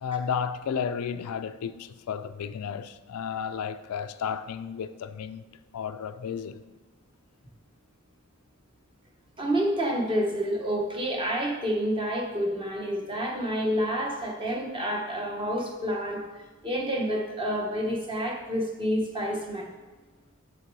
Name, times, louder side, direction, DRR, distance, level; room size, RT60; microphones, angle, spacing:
voice 1, 0.0-5.4 5.7-6.6, left 7 dB, 70° left, 0.4 m, -33 dB
voice 2, 9.4-16.3 16.6-19.7, equal, 25° right, 1.1 m, -28 dB
6.6 x 6.2 x 4.7 m
head